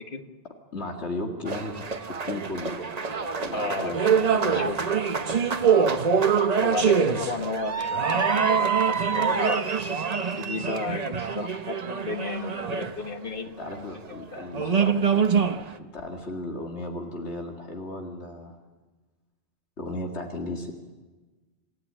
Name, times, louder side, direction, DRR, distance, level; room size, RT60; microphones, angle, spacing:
voice 1, 0.7-3.0 3.4-4.0 4.5-4.7 13.6-15.3 15.9-18.6 19.8-20.7, left 2 dB, 75° left, 1 dB, 2.4 m, -35 dB
sound 1, 1.5-13.4 14.1-14.2 14.5-15.7, right 6 dB, 40° right, 1.0 m, -25 dB
voice 2, 3.5-4.8 6.6-9.6 10.3-14.0 14.3-15.1, left 3 dB, 50° left, 5 dB, 1.7 m, -34 dB
28.5 x 14.0 x 8.8 m, 1.3 s
omnidirectional pair, 1.1 m